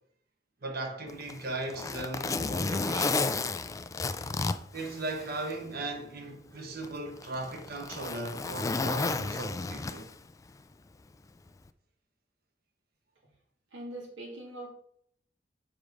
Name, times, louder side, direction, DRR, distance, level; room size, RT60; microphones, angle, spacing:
voice 1, 0.6-3.6 4.7-10.1, right 2 dB, 55° right, 1.2 m, -38 dB
Zipper (clothing), 1.1-5.6 6.0-6.1 6.8-10.3 11.5-11.7, left 3 dB, 20° left, 0.3 m, -32 dB
voice 2, 13.7-14.7, right 1 dB, 85° right, 2.5 m, -41 dB
6.0 x 5.1 x 5.2 m
head